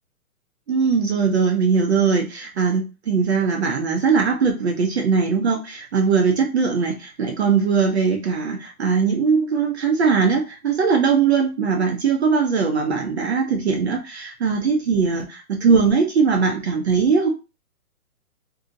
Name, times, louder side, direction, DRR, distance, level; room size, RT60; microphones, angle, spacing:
voice 1, 0.7-17.3, right 5 dB, 45° right, 2 dB, 0.6 m, -20 dB
2.7 x 2.7 x 2.5 m, 0.29 s
hypercardioid pair, 170°, 45 cm